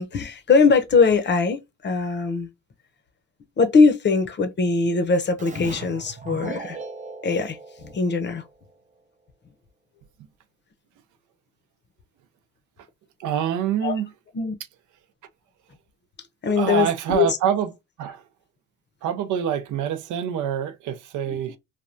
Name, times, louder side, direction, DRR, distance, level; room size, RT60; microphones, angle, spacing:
voice 1, 0.0-2.5 3.6-6.8 7.2-8.4 13.8-14.0 14.3-14.5 16.4-17.4 21.3-21.6, left 4 dB, 35° left, 0.6 m, -21 dB
Keyboard (musical), 5.4-8.8, right 4 dB, 25° right, 0.5 m, -39 dB
voice 2, 13.2-14.1 16.5-17.7 18.0-18.2 19.0-21.6, right 9 dB, 80° right, 0.5 m, -25 dB
3.3 x 2.2 x 2.5 m
cardioid pair, 90°, 30 cm